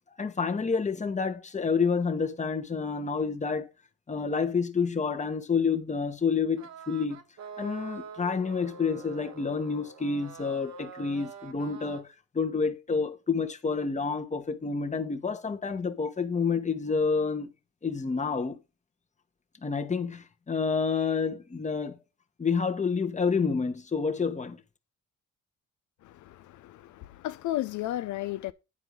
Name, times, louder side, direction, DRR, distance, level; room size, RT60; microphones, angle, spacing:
voice 1, 0.2-3.7 4.1-7.2 7.6-12.1 12.3-17.5 17.8-18.6 19.6-22.0 22.4-24.6, left 5 dB, 25° left, 1.1 m, -29 dB
sound 1, 6.6-12.0, right 5 dB, 65° right, 1.5 m, -45 dB
voice 2, 26.0-28.5, left 14 dB, 75° left, 0.5 m, -34 dB
9.9 x 4.6 x 5.4 m
cardioid pair, 90°, 30 cm